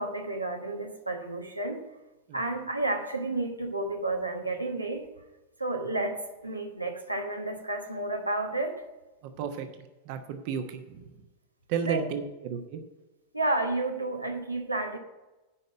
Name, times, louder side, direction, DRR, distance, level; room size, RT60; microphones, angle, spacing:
voice 1, 0.0-1.8 2.3-5.1 5.6-8.8 11.8-12.0 13.3-15.0, right 2 dB, 85° right, 2 dB, 1.1 m, -31 dB
voice 2, 9.2-9.7 10.0-11.1 11.7-12.8, right 7 dB, 45° right, 6 dB, 1.0 m, -33 dB
9.9 x 5.4 x 8.0 m, 1.1 s
figure-of-eight pair, 90°, 0 cm